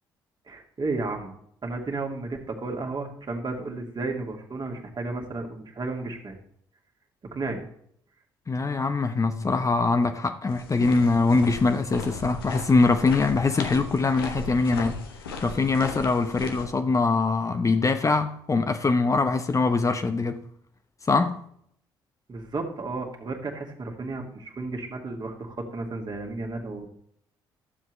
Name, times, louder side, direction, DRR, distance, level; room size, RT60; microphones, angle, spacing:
voice 1, 0.5-1.4 1.6-6.4 7.3-7.7 22.3-26.9, right 3 dB, 35° right, 2.1 m, -33 dB
voice 2, 8.5-15.0 15.4-20.4 21.1-21.4, left 3 dB, 25° left, 0.8 m, -23 dB
sound 1, 10.5-16.7, left 4 dB, 85° left, 1.0 m, -37 dB
12.5 x 7.4 x 3.2 m
figure-of-eight pair, 45°, 12 cm